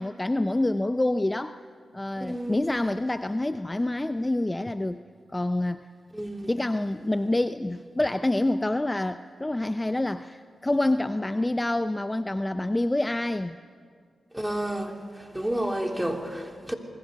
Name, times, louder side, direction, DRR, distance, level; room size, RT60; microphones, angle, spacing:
voice 1, 0.0-1.6 1.9-5.0 5.3-5.9 6.5-13.6, left 1 dB, 20° left, 0.7 m, -27 dB
voice 2, 2.2-2.6 6.1-6.5 14.3-16.7, right 1 dB, 10° right, 3.4 m, -31 dB
28.0 x 21.0 x 6.7 m
supercardioid pair, 45°, 0 cm